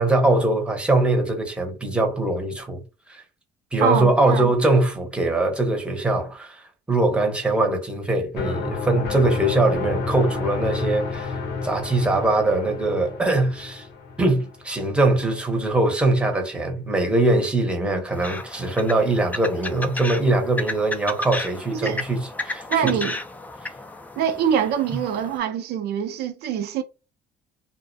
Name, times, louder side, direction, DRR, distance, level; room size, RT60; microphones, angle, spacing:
voice 1, 0.0-2.8 3.1-3.2 3.7-13.9 14.2-23.0, right 2 dB, 5° right, 0.7 m, -22 dB
voice 2, 3.8-4.5 21.7-22.0 22.7-23.1 24.2-26.8, right 9 dB, 70° right, 0.4 m, -24 dB
sound 1, 8.4-15.1, left 4 dB, 75° left, 0.7 m, -31 dB
sound 2, 18.1-25.4, left 2 dB, 10° left, 0.3 m, -33 dB
2.4 x 2.1 x 2.5 m
cardioid pair, 110°, 17 cm